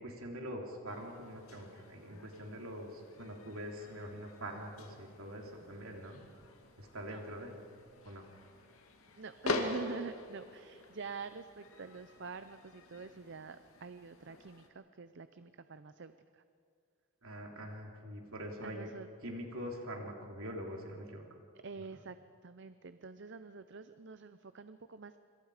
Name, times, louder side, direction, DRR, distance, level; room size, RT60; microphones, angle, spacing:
voice 1, 0.0-6.2 6.8-7.5 8.1-8.2 17.2-18.9 19.2-21.2, equal, 70° right, 1 dB, 3.5 m, -44 dB
sound 1, 0.9-14.7, left 2 dB, 75° left, 2.3 m, -45 dB
voice 2, 9.2-16.4 18.6-19.1 21.5-22.2 22.4-25.2, right 4 dB, 55° right, 11 dB, 0.6 m, -46 dB
26.5 x 26.0 x 5.0 m, 2.2 s
head